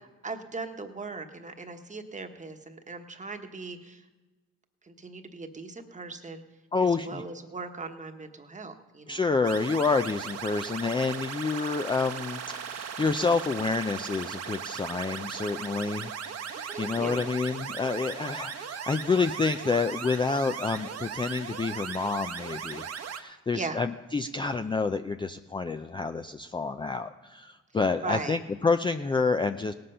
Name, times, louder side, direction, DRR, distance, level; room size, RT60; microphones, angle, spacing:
voice 1, 0.2-4.0 4.8-6.4 6.8-9.3 16.7-17.3 23.5-23.8 28.0-28.4, right 3 dB, 25° right, 6 dB, 1.2 m, -39 dB
voice 2, 6.7-7.2 9.1-29.7, left 4 dB, 15° left, 8 dB, 0.4 m, -28 dB
sound 1, 9.4-23.2, right 7 dB, 55° right, 1.1 m, -38 dB
17.5 x 7.8 x 5.5 m, 1.2 s
cardioid pair, 90°, 30 cm